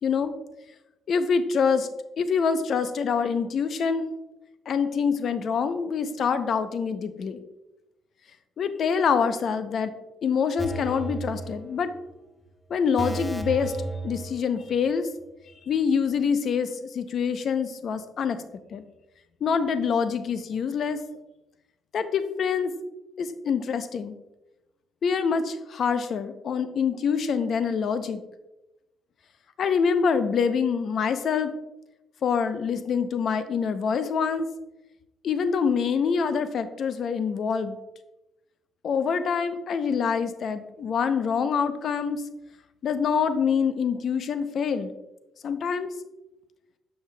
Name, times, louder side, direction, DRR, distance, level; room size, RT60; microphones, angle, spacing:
voice 1, 0.0-0.3 1.1-1.9 2.2-4.1 4.7-7.4 8.6-10.0 10.2-11.9 12.7-13.7 14.0-15.1 15.7-18.4 18.7-18.8 19.4-21.0 21.9-22.7 23.2-24.2 25.0-28.2 29.6-31.5 32.2-34.5 35.2-37.8 38.8-42.2 42.8-44.9 45.4-45.9, left 6 dB, 60° left, 11 dB, 0.5 m, -25 dB
sound 1, 10.6-12.1 12.4-12.5 13.0-14.9 15.2-15.3, right 3 dB, 10° left, 0.8 m, -34 dB
7.3 x 6.5 x 2.2 m, 0.97 s
cardioid pair, 90°, 0 cm